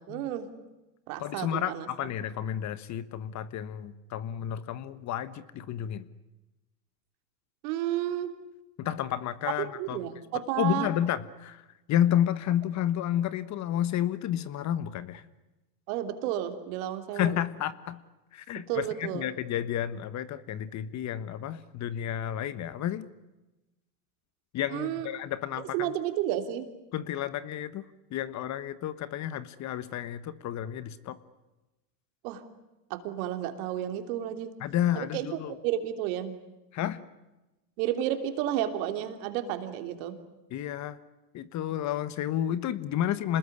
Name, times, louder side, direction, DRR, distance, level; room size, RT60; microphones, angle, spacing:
voice 1, 0.1-0.5 1.1-1.9 7.6-8.3 9.8-10.9 15.9-17.4 18.7-19.2 24.7-25.1 25.6-26.7 32.2-32.4 32.9-34.5 34.9-35.3 35.6-36.3 37.8-40.2, right 11 dB, 60° right, 7 dB, 3.3 m, -31 dB
voice 2, 1.2-6.1 8.8-10.0 10.6-15.2 17.1-18.0 18.3-23.1 24.5-25.9 26.9-27.8 28.1-31.2 34.6-35.6 36.7-37.0 40.5-41.0 41.3-43.4, left 11 dB, 35° left, 15 dB, 1.3 m, -31 dB
27.0 x 20.5 x 9.8 m, 1.0 s
supercardioid pair, 120°, 48 cm